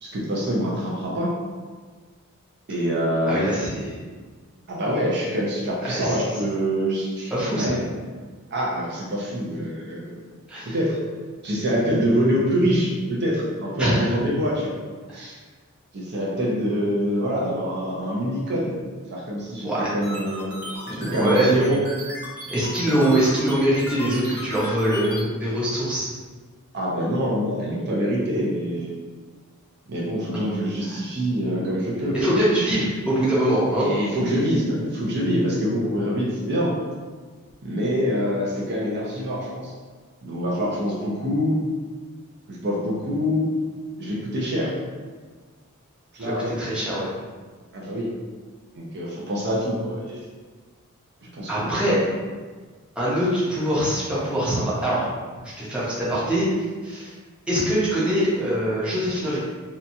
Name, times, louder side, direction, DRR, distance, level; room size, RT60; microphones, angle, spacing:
voice 1, 0.0-1.3 2.7-3.4 4.7-7.9 8.5-10.1 10.6-11.0 11.4-14.8 15.1-15.4 15.9-18.7 19.1-20.5 21.0-21.8 26.7-28.9 29.9-32.3 33.7-36.7 37.6-39.7 40.2-41.6 42.5-43.5 44.0-44.8 46.1-46.5 47.7-48.1 48.7-50.2 51.3-52.0, equal, 50° right, -4 dB, 0.5 m, -25 dB
voice 2, 3.3-3.9 5.9-6.2 7.3-7.7 10.5-10.8 13.8-14.1 15.1-15.2 19.6-19.9 20.4-21.6 22.5-26.1 30.9-31.0 32.1-33.9 46.2-47.1 51.5-52.0 53.0-55.1 55.6-56.5 56.8-57.1 57.5-59.4, right 1 dB, 5° right, -9 dB, 0.6 m, -23 dB
sound 1, 20.0-25.2, equal, 75° right, 0.9 m, -35 dB
2.8 x 2.2 x 2.6 m, 1.5 s
head